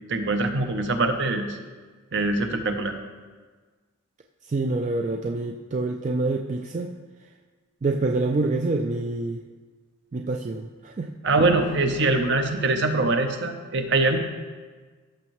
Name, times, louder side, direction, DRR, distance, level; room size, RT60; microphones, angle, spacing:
voice 1, 0.1-1.6 2.1-2.9 11.2-14.2, right 2 dB, 55° right, 6 dB, 0.8 m, -23 dB
voice 2, 4.4-6.9 7.8-9.4 10.1-11.1, right 2 dB, 35° right, 3 dB, 0.3 m, -26 dB
14.0 x 6.4 x 3.1 m, 1.4 s
head